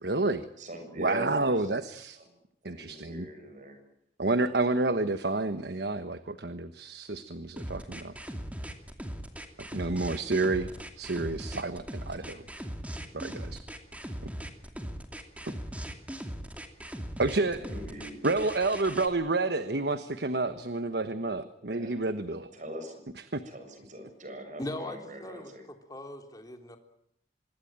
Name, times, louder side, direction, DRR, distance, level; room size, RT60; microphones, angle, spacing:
voice 1, 0.0-0.4 1.0-2.2 2.6-3.3 4.2-8.1 9.6-10.7 11.0-12.4 13.1-13.6 17.2-17.6 18.2-22.5 23.3-23.4, right 3 dB, 65° right, 11 dB, 1.2 m, -29 dB
voice 2, 0.6-3.8 17.3-18.2 21.6-22.2 22.5-23.0 23.4-25.6, equal, 45° right, 6 dB, 7.2 m, -42 dB
sound 1, 7.6-19.1, equal, 10° right, 2.6 m, -39 dB
voice 3, 24.6-25.5 25.9-26.8, left 1 dB, 20° left, 5 dB, 3.4 m, -39 dB
25.5 x 21.5 x 8.8 m, 0.74 s
head